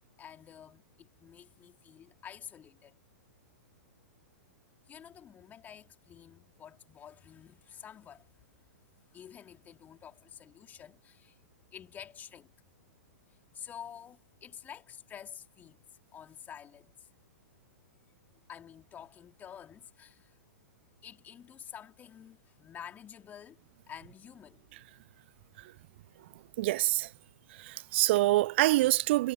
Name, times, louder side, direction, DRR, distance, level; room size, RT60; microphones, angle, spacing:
voice 1, 0.2-3.0 4.9-8.5 9.0-11.4 11.7-12.5 13.3-15.8 16.1-17.1 18.5-20.4 21.0-24.7 26.1-26.3, left 9 dB, 20° left, 4.1 m, -49 dB
voice 2, 26.6-27.1 27.6-29.3, right 18 dB, 45° right, 1.0 m, -26 dB
figure-of-eight pair, 105°, 9 cm